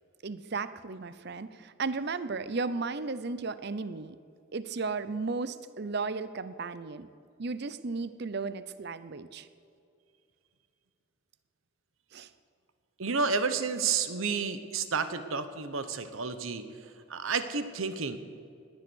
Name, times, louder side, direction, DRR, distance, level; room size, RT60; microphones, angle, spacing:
voice 1, 0.2-4.2 4.5-7.1 7.4-9.5 12.1-12.3, right 4 dB, 50° right, 14 dB, 0.6 m, -35 dB
voice 2, 13.0-16.7 17.1-18.2, right 5 dB, 70° right, 11 dB, 1.0 m, -30 dB
18.5 x 10.5 x 6.3 m, 2.4 s
head